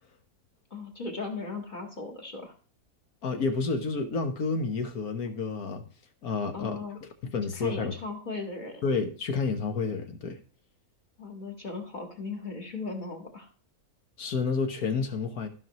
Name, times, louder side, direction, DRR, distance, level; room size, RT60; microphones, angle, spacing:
voice 1, 0.7-2.5 6.5-7.0 7.5-8.8 11.2-13.5, left 3 dB, 30° left, 1.9 m, -37 dB
voice 2, 3.2-5.8 6.2-6.8 7.3-7.9 8.8-10.4 14.2-15.5, left 4 dB, 70° left, 1.7 m, -29 dB
15.0 x 5.6 x 3.0 m
omnidirectional pair, 1.6 m